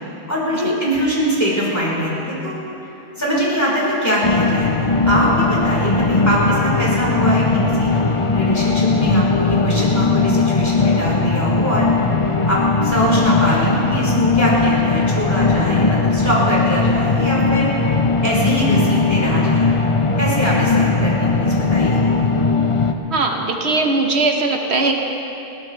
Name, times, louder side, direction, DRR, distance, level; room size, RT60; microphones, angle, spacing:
voice 1, 0.3-2.5 3.2-7.4 7.8-7.9 8.3-12.1 12.5-17.7 18.2-19.7 20.2-22.0, equal, 15° left, -7 dB, 4.6 m, -22 dB
sound 1, 4.2-22.9, left 3 dB, 35° left, 0.7 m, -18 dB
voice 2, 23.1-25.0, right 3 dB, 80° right, 2 dB, 1.5 m, -20 dB
21.5 x 17.5 x 3.4 m, 2.8 s
omnidirectional pair, 1.1 m